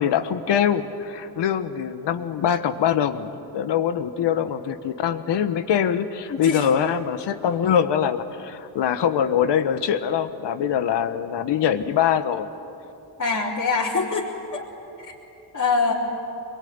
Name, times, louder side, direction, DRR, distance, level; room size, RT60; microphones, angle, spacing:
voice 1, 0.0-12.5, left 8 dB, 80° left, 10 dB, 1.4 m, -23 dB
voice 2, 6.3-6.7 13.2-14.7 15.0-15.1 15.5-15.9, left 4 dB, 45° left, -8 dB, 3.8 m, -24 dB
24.5 x 22.5 x 9.6 m, 2.8 s
cardioid pair, 85°, 42 cm